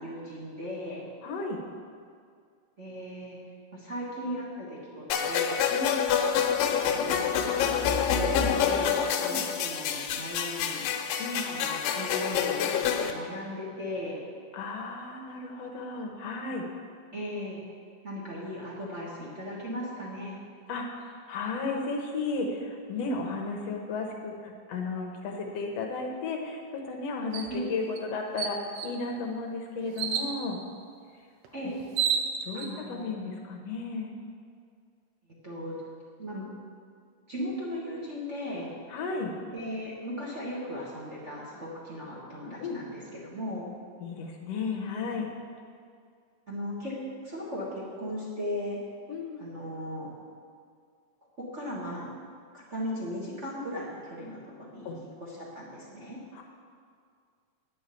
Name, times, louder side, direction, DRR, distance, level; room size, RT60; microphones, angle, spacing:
voice 1, 0.0-1.0 2.8-3.4 3.7-5.6 7.0-7.8 8.1-10.9 11.5-14.2 17.1-17.6 18.0-20.4 27.5-27.6 31.5-31.7 32.5-33.2 35.4-35.8 36.2-36.5 37.3-38.7 39.5-43.6 46.5-47.0 47.2-48.8 49.4-50.1 51.4-52.1 52.5-54.9 55.2-56.2, left 1 dB, 40° right, -6 dB, 0.9 m, -37 dB
voice 2, 1.2-1.6 5.7-6.1 9.2-9.4 11.2-11.4 14.5-16.6 20.7-30.6 32.5-34.1 38.9-39.3 42.6-42.8 44.0-45.3 49.1-49.4 54.8-55.0 56.3-56.4, left 3 dB, 70° left, 2 dB, 1.6 m, -34 dB
sound 1, 5.1-13.1, left 7 dB, 90° left, 2.5 m, -27 dB
sound 2, 27.3-27.5 28.0-28.1 28.4-29.0 30.0-30.3 31.4-31.5 31.8-32.7, right 7 dB, 85° right, 2.3 m, -29 dB
10.0 x 5.5 x 8.3 m, 2.2 s
omnidirectional pair, 3.8 m